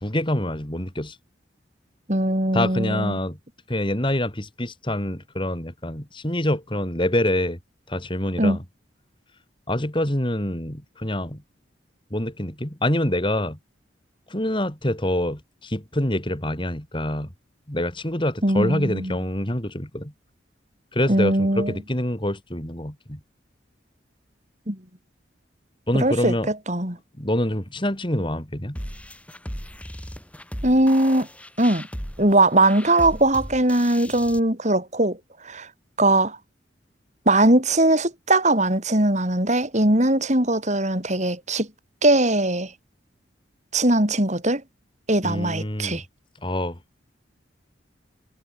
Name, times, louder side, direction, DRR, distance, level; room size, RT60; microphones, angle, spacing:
voice 1, 0.0-1.2 2.5-3.4 3.7-7.6 7.9-8.6 9.7-11.4 12.1-13.6 14.3-17.3 17.7-20.1 20.9-23.2 25.9-26.5 27.2-28.8 45.2-46.0 46.4-46.8, left 1 dB, 25° left, 3.7 m, -26 dB
voice 2, 2.1-3.2 8.4-8.6 18.4-19.2 21.1-21.7 24.7-24.8 25.9-27.0 30.6-31.3 31.6-31.9 32.2-35.2 35.4-35.7 36.0-36.4 37.3-41.7 42.0-42.7 43.7-44.6 45.1-46.0, right 1 dB, 40° right, 7.1 m, -20 dB
sound 1, 28.8-34.4, equal, 5° left, 6.4 m, -37 dB
head